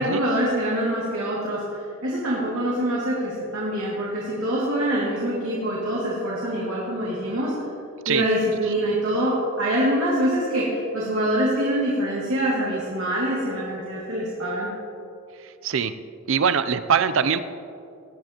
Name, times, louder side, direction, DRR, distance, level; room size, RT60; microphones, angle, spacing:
voice 1, 0.0-1.6 2.0-7.5 8.1-14.7, right 1 dB, 85° right, -6 dB, 2.3 m, -25 dB
voice 2, 15.6-15.9 16.3-17.4, right 7 dB, 65° right, 12 dB, 0.5 m, -22 dB
18.0 x 10.5 x 3.0 m, 2.6 s
head